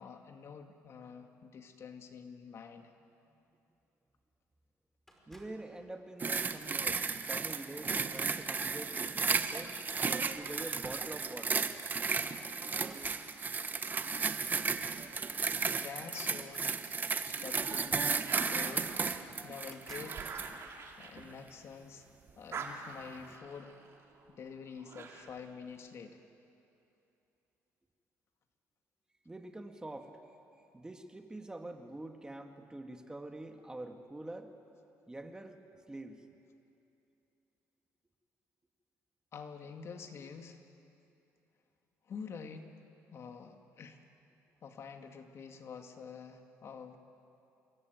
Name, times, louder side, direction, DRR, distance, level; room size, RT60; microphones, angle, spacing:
voice 1, 0.0-2.9 9.8-10.0 14.0-14.5 15.3-16.8 17.2-20.3 21.0-22.1 22.4-23.8 24.3-26.2 39.3-40.6 42.1-42.7 43.1-44.1 44.6-47.0, left 6 dB, 50° left, 5 dB, 2.3 m, -48 dB
sound 1, 5.1-5.7 6.6-6.9 8.4-8.5 8.8-9.0 9.9-10.8 11.8-11.9 12.2-13.4 16.3-17.4 18.3-18.4 18.6-19.2 19.6-20.2, equal, 5° left, 5.2 m, -59 dB
voice 2, 5.3-7.0 7.3-9.7 10.4-11.7 29.3-30.1 30.7-34.5 35.1-35.6 35.9-36.3, right 2 dB, 15° right, 5 dB, 2.0 m, -45 dB
sound 2, 6.2-20.5 21.2-21.3, right 5 dB, 30° right, 1.2 m, -34 dB
sound 3, 13.9-16.6 17.1-21.9 22.2-25.5, right 5 dB, 50° right, 3.2 m, -47 dB
27.5 x 22.0 x 9.4 m, 2.8 s
cardioid pair, 100°, 6 cm